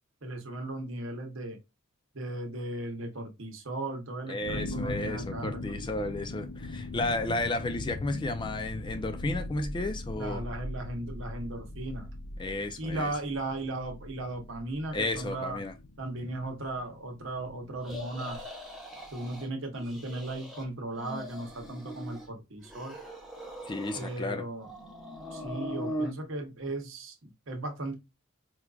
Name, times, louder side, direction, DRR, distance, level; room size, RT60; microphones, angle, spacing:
voice 1, 0.2-1.6 2.1-5.6 10.2-12.1 12.8-15.6 16.0-18.5 19.1-22.9 23.9-24.7 25.3-27.9, right 2 dB, 65° right, 0.9 m, -36 dB
voice 2, 4.3-10.4 12.4-13.1 14.9-15.7 23.7-24.5, left 2 dB, 20° left, 0.3 m, -33 dB
sound 1, 4.4-18.1, left 2 dB, 85° left, 0.5 m, -40 dB
sound 2, 17.8-19.5 19.8-20.6 20.9-22.3 22.6-24.3 24.6-26.1, equal, ahead, 0.8 m, -40 dB
4.4 x 2.4 x 2.3 m
head